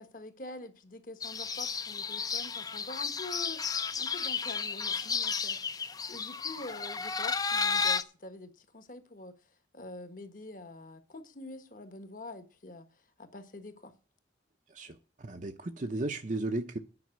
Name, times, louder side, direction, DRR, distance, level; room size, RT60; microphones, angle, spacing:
voice 1, 0.0-9.4 9.7-13.9, left 2 dB, 45° left, 1.3 m, -46 dB
sound 1, 1.2-8.0, left 5 dB, 20° left, 0.5 m, -33 dB
voice 2, 14.7-16.8, right 2 dB, 40° right, 0.7 m, -35 dB
9.4 x 5.6 x 8.2 m
head